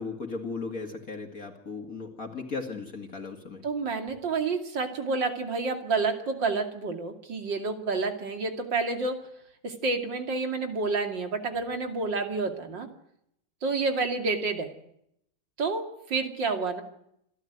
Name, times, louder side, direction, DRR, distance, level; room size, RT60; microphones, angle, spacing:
voice 1, 0.0-3.6, left 4 dB, 50° left, 3 dB, 2.6 m, -36 dB
voice 2, 3.6-9.2 9.6-12.9 13.6-14.7 15.6-16.8, right 4 dB, 85° right, 5 dB, 3.2 m, -29 dB
27.5 x 13.0 x 9.4 m, 0.76 s
omnidirectional pair, 1.9 m